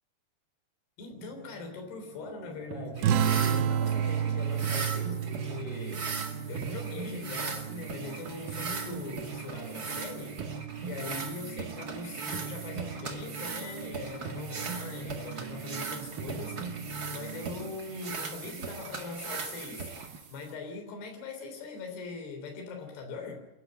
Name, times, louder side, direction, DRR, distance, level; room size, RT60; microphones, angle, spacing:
voice 1, 1.0-6.1 6.5-23.5, left 3 dB, 70° left, 3 dB, 5.4 m, -41 dB
sound 1, 1.1-20.2, right 6 dB, 70° right, 2.4 m, -42 dB
sound 2, 3.0-20.5, right 4 dB, 40° right, 1.4 m, -39 dB
sound 3, 3.0-8.0, right 8 dB, 90° right, 3.2 m, -30 dB
28.5 x 11.5 x 9.9 m, 0.99 s
omnidirectional pair, 4.9 m